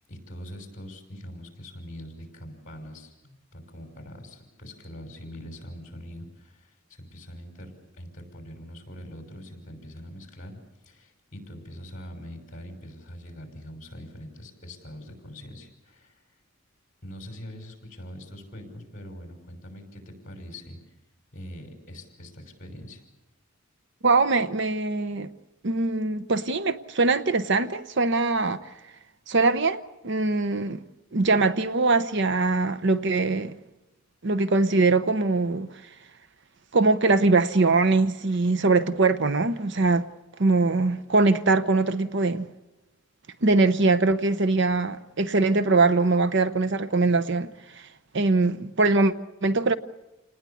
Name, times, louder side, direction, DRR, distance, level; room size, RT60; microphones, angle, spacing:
voice 1, 0.1-10.6 10.9-16.2 17.0-20.8 21.3-23.0, equal, 40° left, 5.7 m, -43 dB
voice 2, 24.0-25.3 25.6-28.7 29.3-30.8 31.1-33.6 34.2-35.7 36.7-40.1 40.4-42.5 43.4-47.9 48.1-49.1 49.4-49.8, right 3 dB, 55° right, 0.8 m, -22 dB
28.5 x 19.5 x 8.5 m
head